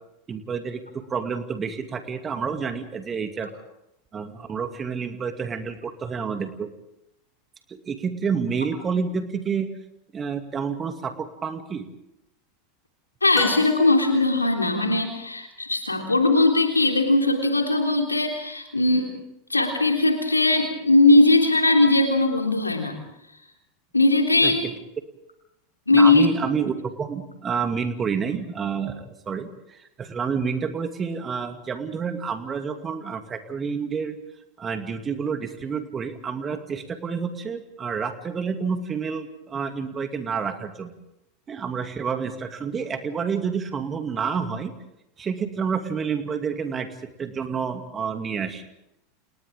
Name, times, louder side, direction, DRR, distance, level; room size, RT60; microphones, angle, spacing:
voice 1, 0.3-3.5 4.1-6.7 7.7-9.7 10.1-11.9 24.4-24.7 25.9-34.2 34.6-41.0 41.5-44.7 45.2-48.7, right 6 dB, 25° right, 6 dB, 2.4 m, -29 dB
voice 2, 13.2-19.1 19.5-23.0 23.9-24.6 25.9-26.3, left 2 dB, 90° left, 2 dB, 3.4 m, -19 dB
sound 1, 13.3-14.5, left 4 dB, 15° left, 2.5 m, -34 dB
30.0 x 30.0 x 3.7 m, 0.85 s
figure-of-eight pair, 85°, 0 cm